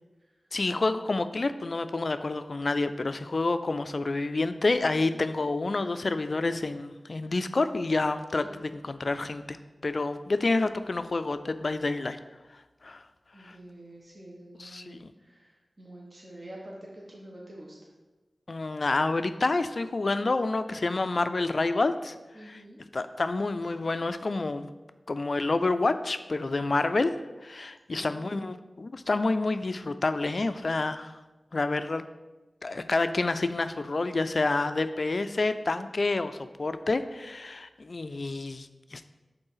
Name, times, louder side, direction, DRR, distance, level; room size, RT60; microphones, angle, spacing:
voice 1, 0.5-9.6 9.8-12.2 12.8-13.0 13.4-13.5 14.6-15.1 18.5-22.2 22.5-22.6 22.9-24.7 25.1-27.1 27.4-31.1 31.5-32.0 32.6-39.0, left 3 dB, 60° left, 11 dB, 0.3 m, -28 dB
voice 2, 13.3-17.8 22.3-22.8 27.9-28.5, right 1 dB, 45° right, -3 dB, 1.2 m, -47 dB
5.4 x 3.8 x 5.6 m, 1.1 s
cardioid pair, 50°, 0 cm